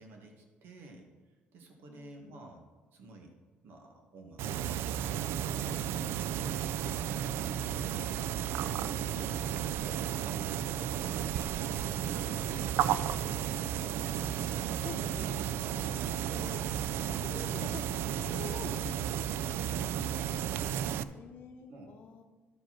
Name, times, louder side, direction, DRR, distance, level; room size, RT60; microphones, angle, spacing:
voice 1, 0.0-2.6 2.9-3.3 3.6-6.0 6.3-6.7 7.1-8.7 8.9-12.7 13.1-14.4 16.3-16.8 19.9-20.2 20.5-21.1 21.7-22.0, right 2 dB, 70° right, 2 dB, 1.7 m, -52 dB
voice 2, 1.9-2.4 13.7-13.8 14.8-16.6 17.0-17.8 18.2-19.4 21.1-22.2, left 6 dB, 55° left, 0 dB, 0.9 m, -47 dB
sound 1, 4.4-21.0, right 9 dB, 85° right, 0.4 m, -33 dB
12.0 x 5.1 x 5.9 m, 1.3 s
cardioid pair, 145°, 4 cm